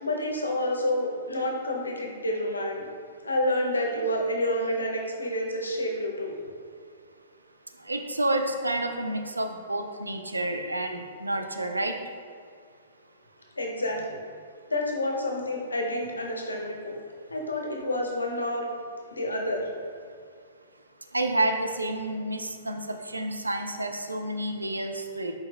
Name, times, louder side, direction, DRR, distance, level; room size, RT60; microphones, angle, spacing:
voice 1, 0.0-2.8 3.2-6.3 13.6-14.2 14.7-16.9 17.3-18.7 19.1-19.7, left 1 dB, 85° left, 0 dB, 0.7 m, -29 dB
voice 2, 7.9-11.9 21.1-25.3, right 1 dB, 90° right, 5 dB, 0.4 m, -29 dB
4.5 x 4.4 x 2.3 m, 2.1 s
figure-of-eight pair, 110°, 0 cm